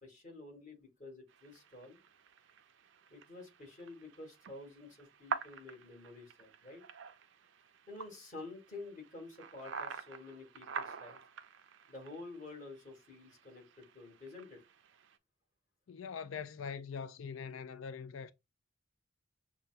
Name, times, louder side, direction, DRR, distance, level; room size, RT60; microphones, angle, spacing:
voice 1, 0.0-2.0 3.1-6.8 7.9-11.2 11.9-14.6, left 2 dB, 40° left, 1.9 m, -50 dB
sound 1, 1.3-15.2, right 6 dB, 70° right, 0.4 m, -47 dB
voice 2, 15.9-18.3, left 6 dB, 85° left, 0.4 m, -43 dB
6.8 x 2.3 x 2.5 m
head